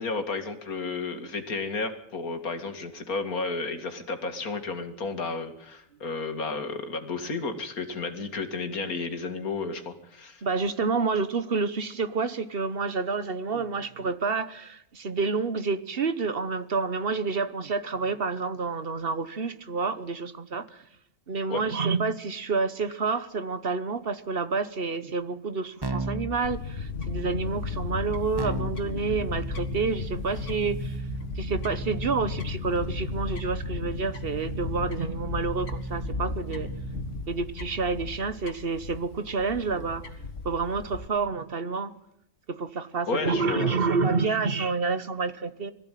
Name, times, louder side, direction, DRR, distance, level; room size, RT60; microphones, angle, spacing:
voice 1, 0.0-10.4 21.5-21.6 43.1-43.8 44.3-44.4, left 3 dB, 75° left, 7 dB, 2.5 m, -32 dB
voice 2, 10.4-20.8 21.3-31.0 31.4-36.7 37.3-41.9 42.5-45.7, right 4 dB, 45° right, 13 dB, 1.2 m, -29 dB
Keyboard (musical), 25.8-26.4 28.4-37.3, right 3 dB, 15° right, 1.2 m, -37 dB
Fowl / Bird, 26.4-41.1, left 4 dB, 55° left, 2.3 m, -35 dB
21.5 x 15.0 x 9.2 m, 0.75 s
omnidirectional pair, 1.5 m